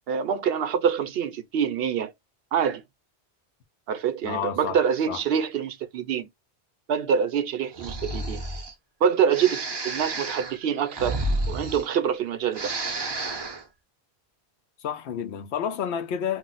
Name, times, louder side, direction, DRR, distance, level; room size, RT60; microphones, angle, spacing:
voice 1, 0.1-2.1 2.5-2.8 3.9-6.3 6.9-8.4 9.0-11.2 11.5-12.7, right 7 dB, 70° right, 0.8 m, -25 dB
voice 2, 4.2-4.8 5.1-5.2 14.8-16.4, left 8 dB, 90° left, 0.9 m, -30 dB
Breathing, 7.7-8.7 9.3-12.2 12.5-13.6, right 2 dB, 30° right, 0.5 m, -31 dB
2.5 x 2.0 x 3.8 m
omnidirectional pair, 1.1 m